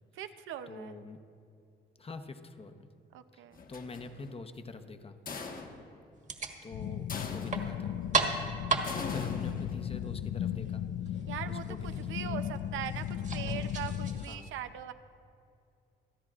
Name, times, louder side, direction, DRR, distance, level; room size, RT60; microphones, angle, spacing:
voice 1, 0.1-1.0 3.1-3.6 11.3-13.1 13.3-14.9, right 10 dB, 80° right, 10 dB, 0.7 m, -41 dB
voice 2, 0.7-1.2 2.0-2.9 3.3-3.4 3.7-5.2 6.6-7.9 9.1-11.2 11.4-12.4 14.2-14.6, left 3 dB, 30° left, 7 dB, 0.9 m, -45 dB
sound 1, 3.5-4.3 5.2-6.0 7.1-7.8 8.8-9.9, left 4 dB, 45° left, 1.3 m, -42 dB
sound 2, 6.1-14.3, right 4 dB, 40° right, 1.5 m, -37 dB
sound 3, 6.7-14.3, left 10 dB, 70° left, 0.4 m, -36 dB
27.0 x 10.5 x 2.5 m, 2.4 s
cardioid pair, 90°, 20 cm